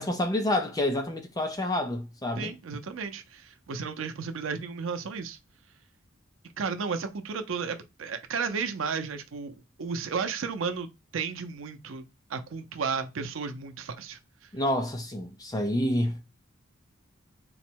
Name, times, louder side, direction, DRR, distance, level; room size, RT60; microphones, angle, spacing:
voice 1, 0.0-2.5 14.5-16.2, left 1 dB, 20° left, 0.5 m, -28 dB
voice 2, 2.4-5.4 6.6-12.0 12.3-14.2, right 5 dB, 85° right, 0.6 m, -33 dB
3.9 x 2.1 x 4.4 m
head